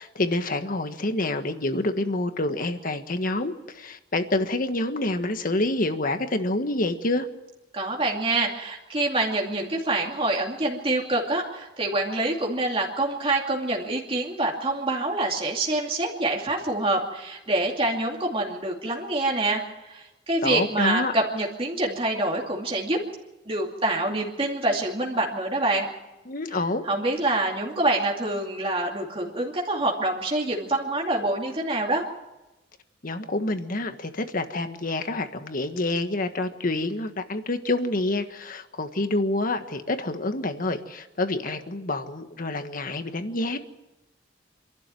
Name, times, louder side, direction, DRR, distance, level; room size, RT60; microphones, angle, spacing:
voice 1, 0.0-7.3 20.4-21.1 26.3-26.9 33.0-43.6, left 2 dB, 50° left, 8 dB, 1.5 m, -27 dB
voice 2, 7.7-23.0 23.5-25.9 26.8-32.0, right 2 dB, 30° right, -1 dB, 2.5 m, -26 dB
27.0 x 12.0 x 9.2 m, 1.0 s
head